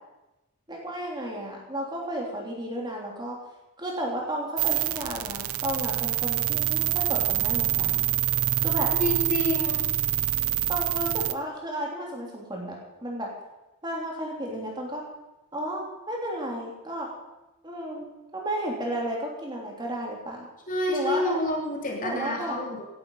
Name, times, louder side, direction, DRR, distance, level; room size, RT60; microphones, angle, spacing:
voice 1, 0.7-3.4 3.8-8.0 8.5-8.9 10.7-13.3 13.8-15.0 15.5-17.1 17.6-18.1 18.3-20.5 20.9-21.4 22.0-22.6, right 1 dB, 20° right, -1 dB, 3.1 m, -33 dB
sound 1, 4.6-11.3, right 13 dB, 75° right, 0.7 m, -26 dB
voice 2, 9.0-9.8 20.7-22.9, left 1 dB, 35° left, -1 dB, 2.9 m, -28 dB
17.0 x 11.0 x 5.6 m, 0.99 s
head